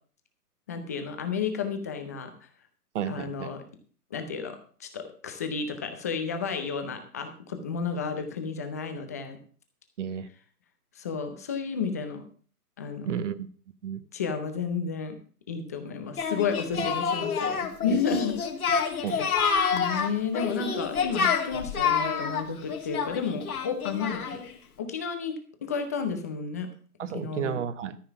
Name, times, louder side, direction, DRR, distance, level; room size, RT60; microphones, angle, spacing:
voice 1, 0.7-2.3 3.1-3.6 4.1-9.4 11.0-12.2 12.8-13.1 14.1-15.2 15.5-18.3 18.9-19.3 19.7-24.4 24.8-25.3 25.6-26.7 27.1-27.6, left 5 dB, 10° left, 7 dB, 0.5 m, -32 dB
voice 2, 2.9-3.6 10.0-10.3 13.0-13.5 13.8-14.0 16.8-16.9 17.9-18.0 19.0-19.4 27.0-28.0, right 9 dB, 50° right, 14 dB, 1.1 m, -32 dB
Singing, 16.2-24.5, left 6 dB, 65° left, 2.6 m, -28 dB
13.5 x 5.6 x 6.9 m, 0.43 s
hypercardioid pair, 140°, 46 cm